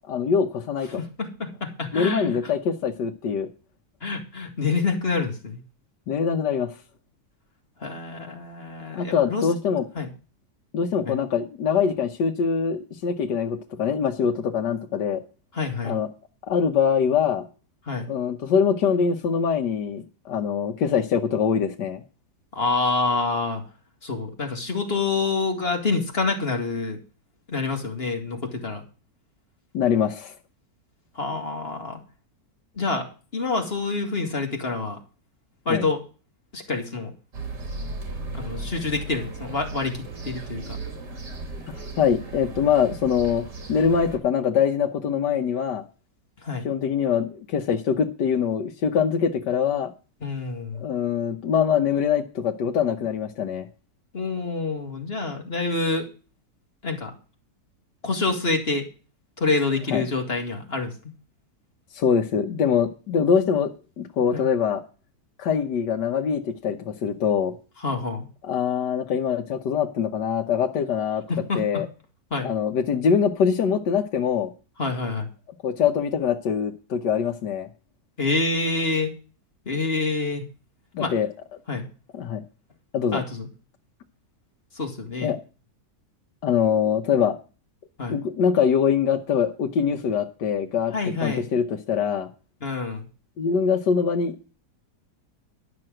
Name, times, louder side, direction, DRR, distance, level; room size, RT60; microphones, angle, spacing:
voice 1, 0.1-1.0 1.9-3.5 6.1-6.8 8.9-9.9 10.7-15.2 15.8-16.1 16.4-17.4 18.1-22.0 29.7-30.3 35.7-35.9 41.7-43.4 43.7-45.8 46.6-49.9 50.8-53.7 59.9-60.0 61.9-63.7 64.0-64.8 65.4-67.5 68.4-71.2 71.5-71.9 72.4-74.5 75.6-77.7 80.9-81.3 82.1-82.4 82.9-83.2 85.2-85.4 86.4-87.4 88.1-90.9 91.2-92.3 93.4-94.5, left 7 dB, 80° left, 4 dB, 1.6 m, -23 dB
voice 2, 1.0-2.4 4.0-5.6 7.8-9.5 10.0-10.1 11.1-11.2 15.5-16.0 17.9-18.1 22.5-23.6 24.0-27.0 27.5-28.8 31.2-32.0 32.8-35.0 35.7-36.0 36.5-37.1 38.3-40.8 46.4-46.7 50.2-50.8 54.1-56.1 56.8-57.1 58.0-58.9 59.4-60.9 64.3-64.5 67.8-68.3 71.3-71.8 72.3-72.5 74.8-75.3 78.2-79.1 79.7-80.5 81.0-81.1 81.7-81.9 83.1-83.5 84.8-85.3 88.0-88.2 90.9-91.5 92.6-93.0, left 3 dB, 35° left, 3 dB, 2.2 m, -27 dB
sound 1, 37.3-44.2, right 2 dB, 75° right, 3.2 m, -36 dB
12.0 x 6.2 x 7.7 m, 0.35 s
omnidirectional pair, 1.8 m